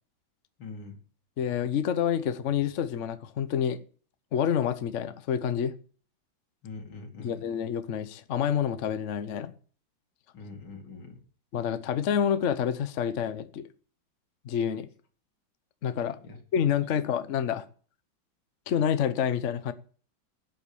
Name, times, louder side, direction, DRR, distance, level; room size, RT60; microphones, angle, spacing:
voice 1, 0.6-1.0 6.6-7.4 10.3-11.2 16.2-16.4, left 3 dB, 85° left, 3.3 m, -43 dB
voice 2, 1.4-3.8 4.3-5.7 7.2-9.5 11.5-13.7 14.4-14.9 15.8-16.2 16.5-17.6 18.7-19.7, left 8 dB, 50° left, 0.9 m, -28 dB
12.5 x 7.9 x 7.0 m
omnidirectional pair, 2.2 m